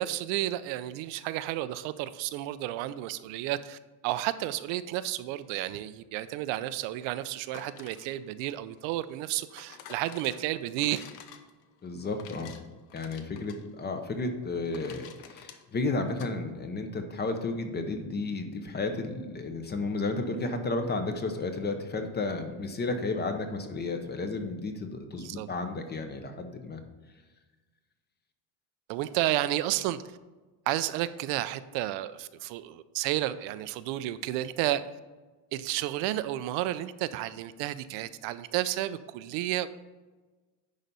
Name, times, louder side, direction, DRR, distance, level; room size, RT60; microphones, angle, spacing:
voice 1, 0.0-11.0 25.2-25.5 28.9-30.2 30.7-34.8 35.5-39.7, right 14 dB, 70° right, 13 dB, 0.6 m, -32 dB
sound 1, 7.4-16.3, left 8 dB, 85° left, 1.0 m, -51 dB
voice 2, 11.8-12.5 12.9-26.8, left 3 dB, 20° left, 6 dB, 0.7 m, -32 dB
10.5 x 4.0 x 5.4 m, 1.3 s
cardioid pair, 140°, 47 cm